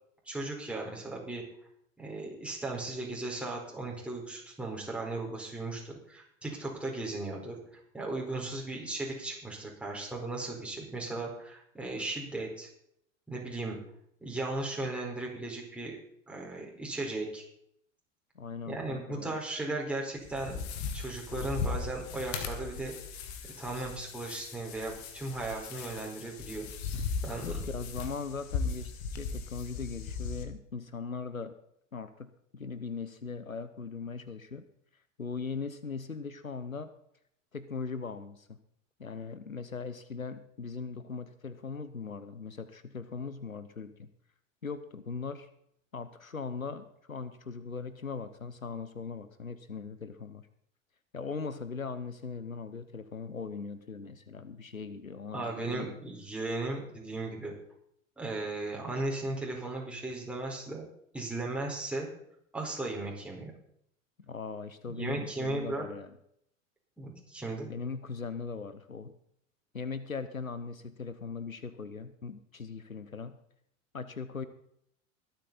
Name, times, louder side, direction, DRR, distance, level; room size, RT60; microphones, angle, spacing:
voice 1, 0.3-1.4 2.0-7.6 7.9-12.7 13.3-13.8 14.2-16.0 16.3-17.4 18.7-20.6 20.9-22.9 23.4-26.7 27.2-27.6 55.3-57.5 58.2-60.9 61.1-62.1 62.5-63.5 64.9-65.9 67.0-67.7, right 2 dB, 5° right, -2 dB, 4.6 m, -36 dB
voice 2, 18.3-19.4 27.4-31.5 31.9-34.7 35.2-36.9 37.5-38.6 39.0-44.1 44.6-45.5 45.9-50.5 51.1-56.0 64.2-66.1 67.7-69.1 69.7-73.4 73.9-74.5, left 5 dB, 90° left, 12 dB, 1.0 m, -39 dB
sound 1, 20.2-30.4, left 5 dB, 55° left, 2.1 m, -38 dB
22.5 x 8.5 x 4.1 m, 0.71 s
figure-of-eight pair, 85°, 40 cm